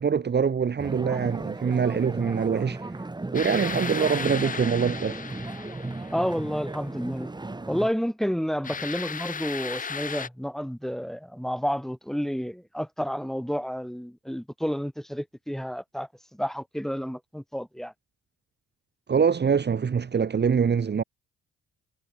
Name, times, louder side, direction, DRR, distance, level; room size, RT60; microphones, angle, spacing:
voice 1, 0.0-2.9 3.3-5.2 19.1-21.0, right 6 dB, 35° right, 1.4 m, -24 dB
sound 1, 0.8-7.9, right 2 dB, 15° right, 2.1 m, -35 dB
sound 2, 3.3-6.6 8.6-10.3, left 6 dB, 25° left, 0.7 m, -35 dB
voice 2, 6.1-7.3 7.7-17.9, equal, ahead, 3.5 m, -30 dB
cardioid pair, 90°, 30 cm